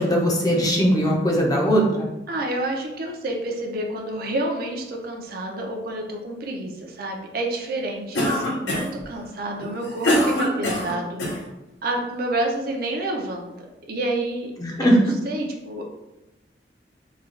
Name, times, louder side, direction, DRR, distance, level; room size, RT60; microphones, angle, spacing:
voice 1, 0.0-2.1 14.6-15.0, equal, 20° left, -1 dB, 0.6 m, -20 dB
voice 2, 2.3-11.4 11.8-14.5 14.8-15.8, right 1 dB, 55° right, 1 dB, 0.6 m, -29 dB
Cough, 8.1-9.0 9.6-11.4, equal, 70° left, 0.8 m, -23 dB
3.2 x 2.3 x 3.7 m, 0.96 s
head